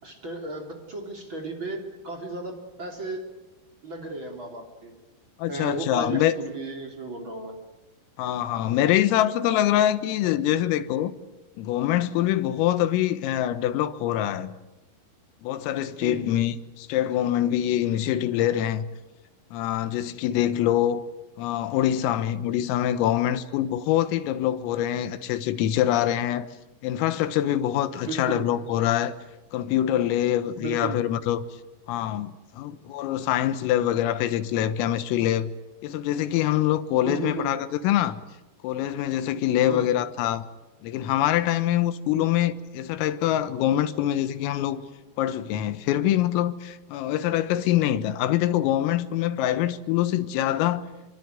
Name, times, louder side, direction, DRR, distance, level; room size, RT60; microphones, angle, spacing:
voice 1, 0.0-3.3 3.8-4.9 5.5-7.6 16.0-16.2 28.0-28.4 30.6-31.0 37.0-37.5 39.7-39.9, right 3 dB, 30° right, 3.2 m, -34 dB
voice 2, 5.4-6.4 8.2-11.1 11.6-14.5 15.4-18.9 19.5-21.0 21.4-26.5 26.8-29.2 29.5-31.5 31.9-35.5 35.8-38.2 38.6-40.5 40.8-44.8 45.2-50.8, left 12 dB, 90° left, 3.9 m, -24 dB
26.0 x 24.0 x 9.3 m
omnidirectional pair, 5.8 m